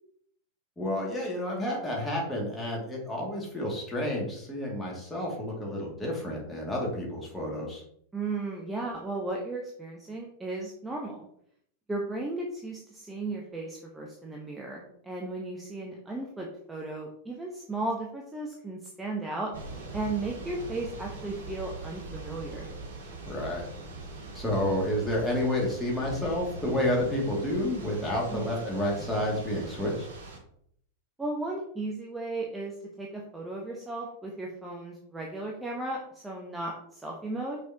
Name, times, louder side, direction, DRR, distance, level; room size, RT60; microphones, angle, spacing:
voice 1, 0.8-7.8 23.3-23.7 24.3-30.1, left 1 dB, 10° left, -3 dB, 2.4 m, -30 dB
voice 2, 8.1-11.2 11.9-19.5 19.9-22.7 28.3-28.7 31.2-37.6, right 2 dB, 10° right, -1 dB, 1.0 m, -35 dB
Thunder / Rain, 19.5-30.4, right 3 dB, 60° right, 1.9 m, -41 dB
6.1 x 5.5 x 2.9 m, 0.67 s
figure-of-eight pair, 90°, 0 cm